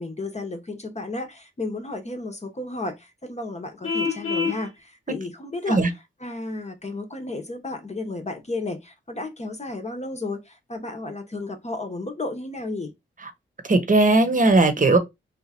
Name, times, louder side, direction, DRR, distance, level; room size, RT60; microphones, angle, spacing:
voice 1, 0.0-5.8 6.2-12.9, left 2 dB, 30° left, 0.9 m, -33 dB
Vehicle horn car horn honking, 3.8-4.6, left 5 dB, 85° left, 1.1 m, -26 dB
voice 2, 13.6-15.0, right 2 dB, 40° right, 0.9 m, -18 dB
2.8 x 2.4 x 4.2 m
cardioid pair, 60°, 21 cm